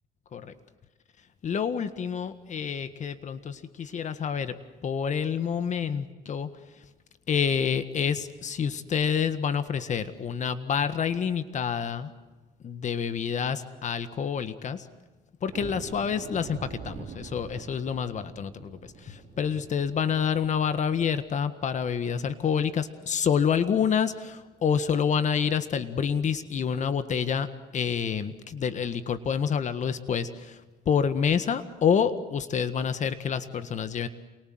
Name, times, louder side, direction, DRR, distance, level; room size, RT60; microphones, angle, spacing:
voice 1, 1.4-4.5 4.8-6.5 7.3-12.1 12.6-14.9 15.4-27.5 27.7-30.6 30.9-34.1, left 7 dB, 45° left, 11 dB, 1.7 m, -28 dB
sound 1, 15.5-22.2 22.6-22.8 23.2-23.3 23.8-24.0, right 6 dB, 55° right, 3.8 m, -45 dB
28.5 x 23.0 x 7.9 m, 1.2 s
cardioid pair, 110°, 17 cm